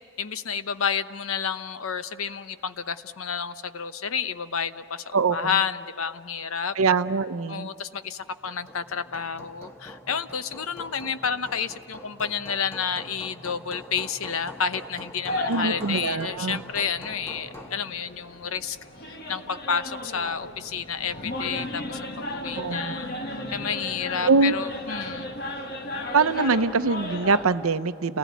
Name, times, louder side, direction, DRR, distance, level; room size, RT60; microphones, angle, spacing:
voice 1, 0.2-6.7 7.5-18.8 19.1-23.1 23.5-25.3, left 6 dB, 75° left, 11 dB, 0.9 m, -30 dB
voice 2, 5.1-5.5 6.8-7.7 15.5-16.6 22.5-22.9 24.3-24.5 26.1-28.2, right 4 dB, 80° right, 12 dB, 0.7 m, -23 dB
Hammer, 8.2-17.9, left 1 dB, 10° left, 1.4 m, -44 dB
sound 1, 15.3-27.5, left 1 dB, 45° left, 1.8 m, -35 dB
30.0 x 19.5 x 9.4 m, 2.8 s
head